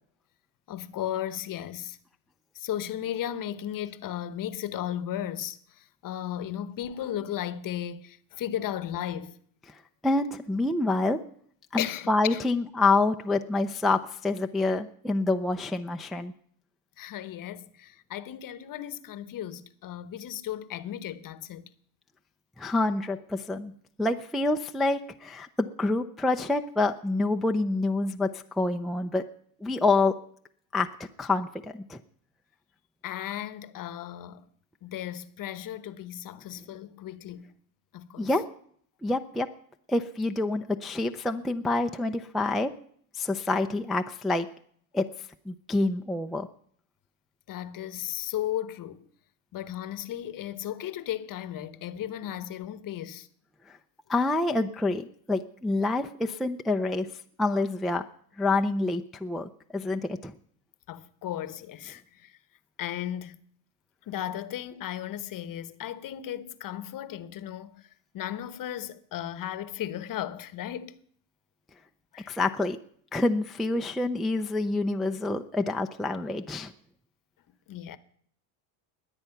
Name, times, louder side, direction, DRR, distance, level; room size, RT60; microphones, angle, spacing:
voice 1, 0.7-2.0 2.5-9.4 11.8-12.4 17.0-21.7 33.0-34.4 34.8-37.5 37.9-38.3 47.5-49.1 49.5-53.3 60.9-62.3 62.8-63.4 64.1-67.8 68.1-71.0 72.1-72.4 77.7-78.0, left 11 dB, 40° left, 1.0 m, -35 dB
voice 2, 10.0-11.2 11.7-16.3 22.6-23.7 24.0-29.2 29.6-30.1 30.7-32.0 38.2-38.4 39.0-39.5 39.9-42.7 43.1-44.5 44.9-45.1 45.5-46.5 54.1-57.1 57.4-58.0 58.4-60.3 72.3-72.8 73.1-76.7, left 2 dB, ahead, 0.5 m, -27 dB
21.0 x 8.0 x 5.8 m
supercardioid pair, 95°, 49 cm